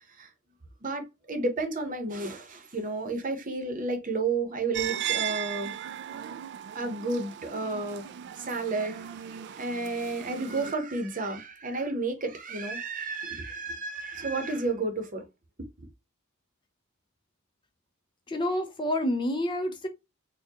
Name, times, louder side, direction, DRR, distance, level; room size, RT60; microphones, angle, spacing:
voice 1, 0.8-5.7 6.7-15.2, right 3 dB, 40° right, 0.8 m, -32 dB
sound 1, 4.7-10.7, right 10 dB, 55° right, 0.3 m, -36 dB
voice 2, 18.3-19.9, left 1 dB, 25° left, 0.5 m, -28 dB
4.4 x 2.2 x 2.9 m
head